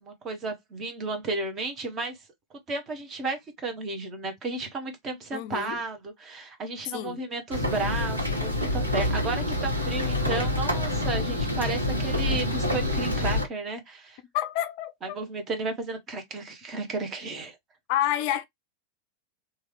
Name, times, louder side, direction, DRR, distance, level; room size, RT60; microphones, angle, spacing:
voice 1, 0.0-2.2 2.7-14.2 15.0-17.6, right 3 dB, 25° right, 1.0 m, -33 dB
voice 2, 5.3-5.8 6.9-7.2 14.3-15.2 17.9-18.4, left 12 dB, 45° left, 0.4 m, -29 dB
sound 1, 7.5-13.4, left 1 dB, 85° right, 1.0 m, -27 dB
3.1 x 2.4 x 3.0 m
figure-of-eight pair, 90°, 0 cm